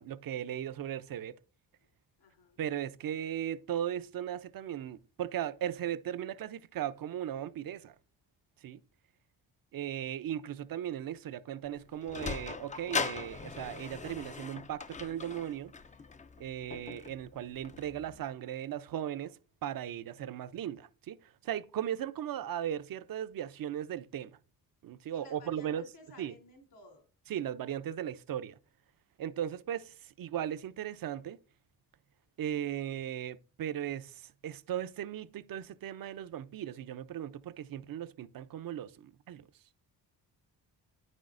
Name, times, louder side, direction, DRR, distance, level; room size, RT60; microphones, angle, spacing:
voice 1, 0.0-1.3 2.6-7.9 8.6-8.8 9.7-15.7 16.4-24.4 24.8-25.8 26.2-26.3 27.3-28.5 29.2-31.4 32.4-39.4, right 10 dB, 55° right, 0.5 m, -37 dB
voice 2, 2.2-2.6 25.1-27.0 29.3-29.4, left 2 dB, 70° left, 3.3 m, -56 dB
Sliding door, 11.6-18.2, left 5 dB, 20° left, 0.4 m, -40 dB
9.1 x 6.3 x 2.5 m
supercardioid pair, 60°, 43 cm